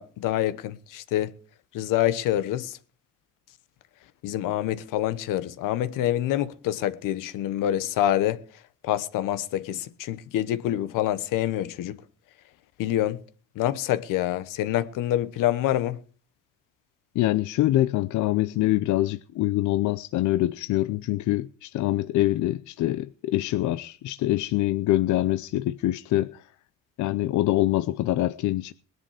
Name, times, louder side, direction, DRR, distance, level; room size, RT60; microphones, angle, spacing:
voice 1, 0.0-1.3 1.7-2.8 4.2-8.4 8.8-12.0 12.8-13.2 13.5-16.0, left 12 dB, 85° left, 1.2 m, -26 dB
voice 2, 17.1-26.5 27.0-28.7, left 15 dB, 65° left, 0.6 m, -25 dB
20.0 x 11.0 x 5.0 m
cardioid pair, 170°, 32 cm